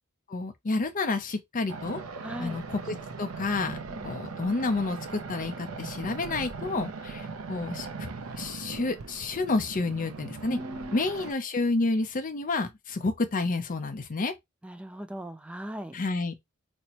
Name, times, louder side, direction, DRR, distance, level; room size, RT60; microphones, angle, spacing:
voice 1, 0.3-2.0 2.4-3.8 4.0-8.1 8.4-10.6 10.9-14.3 15.9-16.3, left 3 dB, 40° left, 0.6 m, -30 dB
sound 1, 1.7-11.3, right 4 dB, 75° right, 0.5 m, -39 dB
voice 2, 2.2-2.6 3.9-4.1 10.5-11.0 14.6-16.0, equal, 5° right, 0.4 m, -38 dB
4.2 x 2.1 x 2.9 m
head